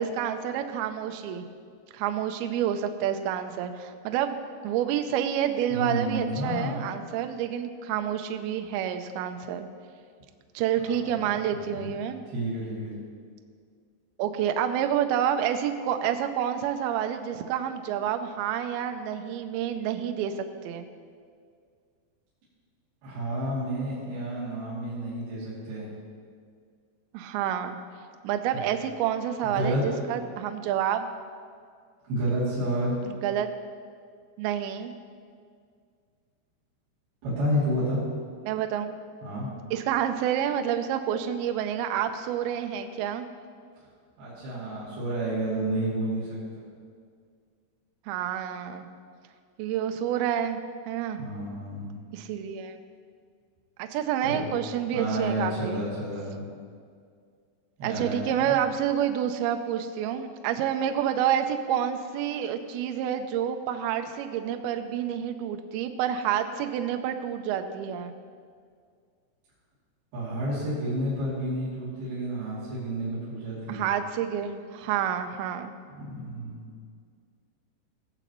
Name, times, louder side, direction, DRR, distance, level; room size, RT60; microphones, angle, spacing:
voice 1, 0.0-1.5 1.9-4.4 4.6-9.7 10.5-12.2 14.2-20.9 27.1-27.8 28.2-31.1 33.1-33.5 34.4-34.9 38.5-39.0 39.7-43.3 48.1-48.9 49.6-51.2 52.1-52.8 53.8-55.8 57.8-68.1 73.7-75.7, right 9 dB, 85° right, 7 dB, 2.2 m, -28 dB
voice 2, 5.7-6.9 10.9-11.3 11.6-11.9 12.3-12.9 23.0-25.9 28.5-28.6 29.5-29.8 32.0-33.0 37.2-38.0 39.2-39.5 44.2-46.7 51.1-52.0 54.2-54.4 54.9-56.4 57.8-58.5 70.1-73.9 75.9-76.7, right 1 dB, 60° right, -12 dB, 4.5 m, -30 dB
18.5 x 7.0 x 3.0 m, 2.1 s
omnidirectional pair, 5.1 m